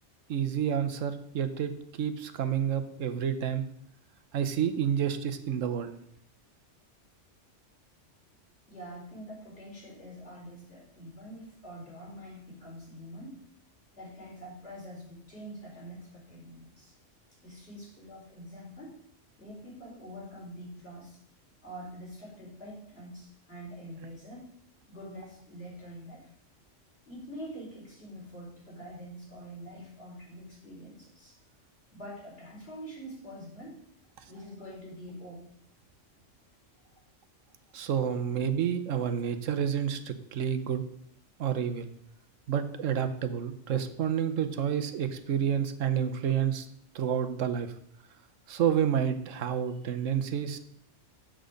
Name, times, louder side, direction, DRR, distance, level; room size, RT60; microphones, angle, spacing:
voice 1, 0.3-3.7 4.3-6.0 37.7-40.8 41.4-41.9 42.5-46.7 46.9-47.7 48.5-50.6, right 8 dB, 90° right, 9 dB, 1.2 m, -29 dB
voice 2, 8.7-13.4 13.9-16.9 17.4-18.9 19.4-21.2 21.6-24.4 24.9-26.2 27.1-31.4 31.9-33.8 34.3-35.4, equal, 55° left, -6 dB, 4.6 m, -45 dB
7.8 x 7.5 x 5.1 m, 0.68 s
omnidirectional pair, 1.3 m